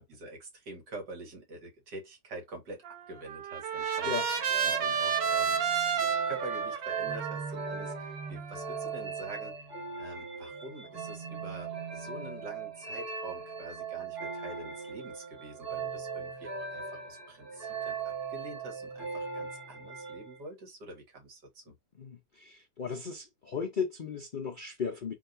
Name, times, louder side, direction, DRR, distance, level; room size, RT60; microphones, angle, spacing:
voice 1, 0.0-9.6 10.0-21.7, right 2 dB, 70° right, 2.3 m, -46 dB
Trumpet, 2.8-9.0, right 7 dB, 85° right, 1.6 m, -32 dB
sound 1, 4.0-20.4, right 5 dB, 30° right, 1.7 m, -39 dB
voice 2, 22.0-25.1, left 6 dB, 70° left, 0.4 m, -36 dB
4.5 x 3.8 x 2.6 m
omnidirectional pair, 1.9 m